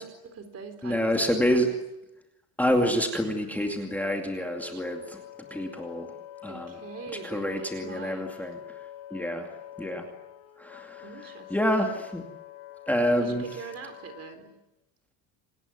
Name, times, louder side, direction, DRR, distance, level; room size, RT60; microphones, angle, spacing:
voice 1, 0.0-1.7 6.5-8.3 11.0-12.0 13.2-14.6, right 5 dB, 30° right, 9 dB, 4.0 m, -43 dB
voice 2, 0.8-1.7 2.6-5.2 5.5-6.1 6.4-6.7 7.2-8.6 9.1-9.5 9.8-10.0 10.6-11.1 11.5-12.2 12.9-13.4, equal, 5° left, 2 dB, 2.4 m, -27 dB
Wind instrument woodwind instrument, 3.5-14.4, left 13 dB, 75° left, 5.2 m, -46 dB
28.0 x 19.0 x 9.4 m, 0.92 s
cardioid pair, 155°, 47 cm